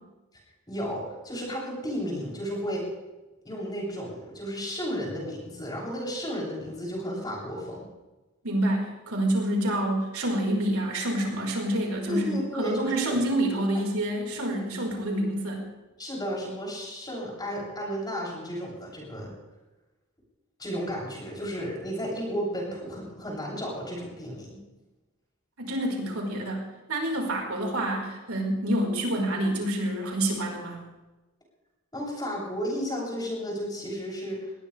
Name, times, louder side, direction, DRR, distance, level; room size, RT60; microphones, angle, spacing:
voice 1, 0.7-2.9 3.4-7.8 12.1-13.2 16.0-19.3 20.6-24.6 31.9-34.5, equal, 20° left, -4 dB, 7.8 m, -33 dB
voice 2, 8.4-15.6 25.6-30.8, right 1 dB, 85° right, 0 dB, 4.9 m, -28 dB
21.5 x 19.0 x 3.5 m, 1.1 s
head